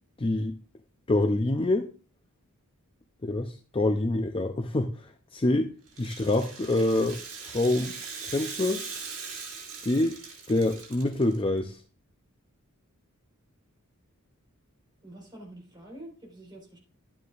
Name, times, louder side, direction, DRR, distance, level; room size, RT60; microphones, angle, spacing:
voice 1, 0.2-0.5 1.1-1.9 3.2-7.2 7.5-8.8 9.8-10.2 10.5-11.8, left 2 dB, 25° left, 6 dB, 0.5 m, -26 dB
Rattle (instrument), 5.9-11.4, right 5 dB, 65° right, 4.0 m, -40 dB
voice 2, 15.0-16.8, right 1 dB, 20° right, -2 dB, 4.1 m, -46 dB
11.5 x 9.3 x 2.5 m, 0.36 s
head